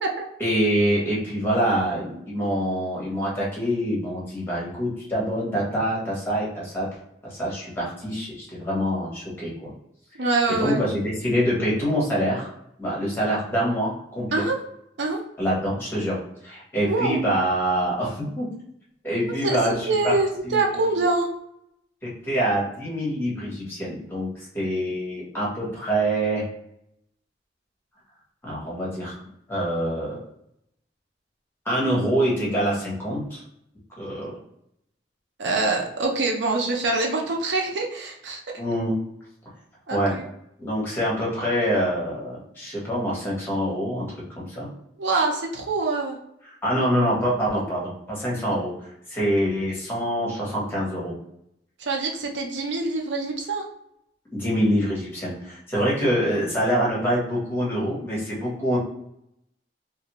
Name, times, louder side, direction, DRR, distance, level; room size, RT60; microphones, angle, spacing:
voice 1, 0.4-6.9 7.3-9.7 10.5-12.5 12.8-14.4 15.4-18.5 19.0-20.1 20.4-20.7 22.0-24.3 24.5-26.4 28.4-29.2 29.5-30.2 31.6-33.4 34.0-34.4 38.6-39.0 39.9-40.1 40.6-44.7 46.6-48.7 49.1-51.1 54.3-58.8, equal, 15° left, -6 dB, 1.2 m, -25 dB
voice 2, 10.2-10.8 14.3-14.6 15.0-15.2 16.8-17.2 19.4-19.6 19.9-21.3 35.4-38.4 39.9-40.2 45.0-46.2 47.5-47.6 51.8-53.6, right 3 dB, 85° right, 1 dB, 0.6 m, -25 dB
2.6 x 2.5 x 3.0 m, 0.77 s
head